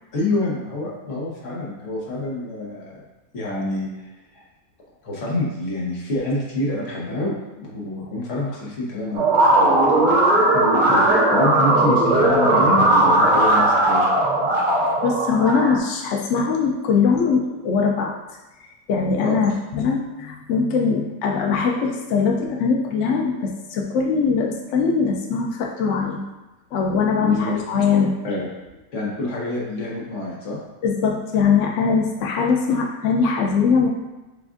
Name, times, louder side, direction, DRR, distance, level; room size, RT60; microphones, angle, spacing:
voice 1, 0.1-3.0 3.3-4.4 5.0-9.8 10.5-11.0 11.3-14.1 19.2-19.4 21.5-21.6 27.2-27.5 28.2-28.5 28.9-30.6, left 2 dB, 50° left, -5 dB, 1.3 m, -27 dB
sound 1, 9.2-15.8, right 1 dB, 60° right, 1.3 m, -17 dB
voice 2, 15.0-18.1 18.9-26.2 26.7-28.1 30.8-33.9, left 5 dB, 85° left, 1 dB, 0.6 m, -21 dB
6.9 x 2.5 x 2.5 m, 1.1 s
omnidirectional pair, 1.8 m